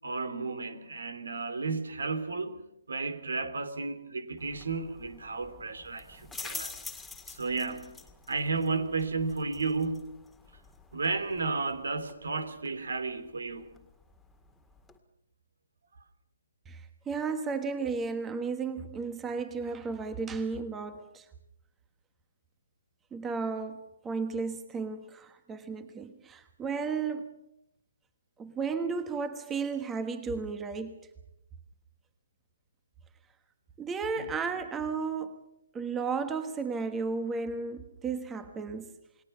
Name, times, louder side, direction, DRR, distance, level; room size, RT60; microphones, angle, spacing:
voice 1, 0.0-6.7 7.3-8.0 8.3-10.2 10.9-13.7 34.2-34.3, right 4 dB, 75° right, 3.1 m, -33 dB
sound 1, 4.4-15.0, left 4 dB, 5° left, 1.9 m, -48 dB
voice 2, 16.7-21.3 23.1-27.4 28.4-31.0 33.8-35.4 35.7-38.9, right 5 dB, 15° right, 1.4 m, -34 dB
29.0 x 20.0 x 5.8 m
hypercardioid pair, 145°, 0 cm